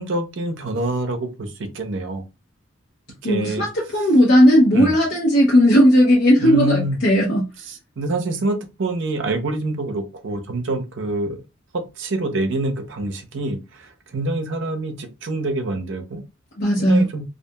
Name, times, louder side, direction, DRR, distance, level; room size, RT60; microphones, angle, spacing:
voice 1, 0.0-2.2 3.2-3.7 4.7-4.9 6.4-7.0 8.0-11.4 11.7-16.2 16.8-17.2, right 2 dB, 65° right, 0.6 m, -26 dB
voice 2, 3.2-7.5 16.6-17.1, equal, 60° left, 0.7 m, -16 dB
2.7 x 2.4 x 2.2 m
head